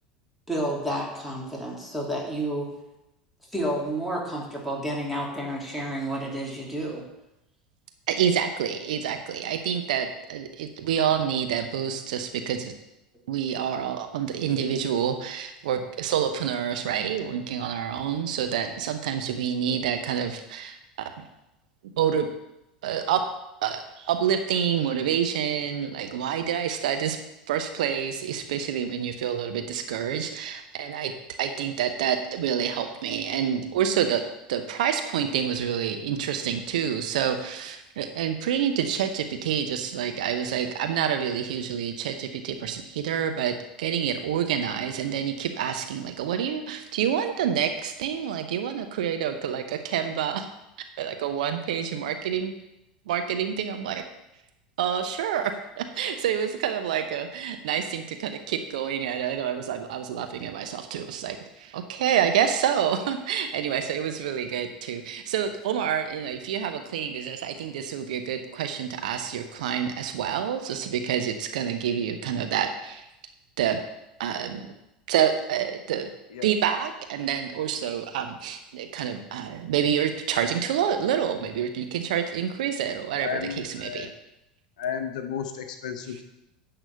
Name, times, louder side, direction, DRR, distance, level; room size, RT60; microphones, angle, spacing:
voice 1, 0.5-2.7 3.5-7.1, right 1 dB, ahead, -3 dB, 2.8 m, -30 dB
voice 2, 8.1-12.7 13.3-20.8 22.0-22.3 22.8-23.2 23.6-27.2 27.5-31.1 31.4-34.2 34.5-50.5 51.0-52.5 53.1-54.0 54.8-73.0 73.6-73.8 74.2-74.8 75.1-76.1 76.4-84.1, right 8 dB, 65° right, 7 dB, 0.8 m, -28 dB
voice 3, 83.2-84.1 84.8-86.2, left 7 dB, 65° left, 7 dB, 0.9 m, -33 dB
10.5 x 4.0 x 6.6 m, 0.90 s
figure-of-eight pair, 80°, 5 cm